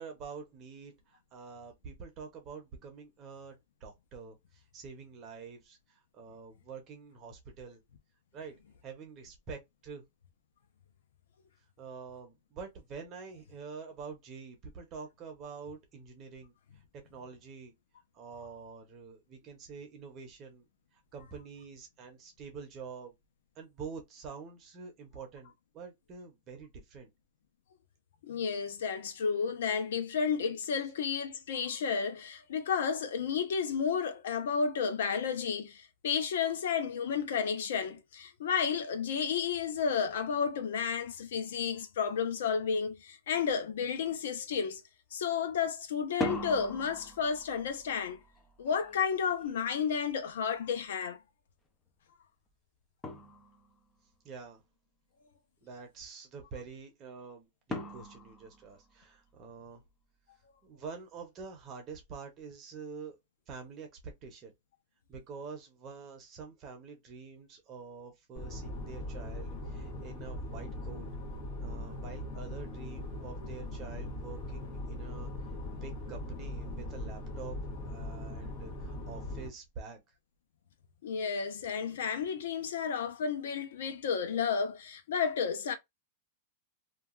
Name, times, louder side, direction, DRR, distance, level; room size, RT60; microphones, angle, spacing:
voice 1, 0.0-7.8 8.3-8.5 8.8-10.0 11.8-17.7 18.1-20.7 20.9-23.1 23.6-27.1 54.2-54.6 55.6-59.8 60.6-63.2 63.5-64.5 65.1-71.1 71.6-75.3 75.8-80.0, right 5 dB, 30° right, 0.8 m, -47 dB
voice 2, 28.2-44.8 45.1-48.2 48.6-51.2 81.0-85.8, left 6 dB, 80° left, 0.7 m, -32 dB
sound 1, 43.4-43.6 44.0-44.5 46.0-50.8 52.5-52.6 53.0-53.9 57.7-59.4, equal, 10° left, 0.5 m, -42 dB
sound 2, 68.3-79.5, left 1 dB, 45° left, 1.3 m, -40 dB
2.8 x 2.4 x 2.4 m
supercardioid pair, 155°, 0 cm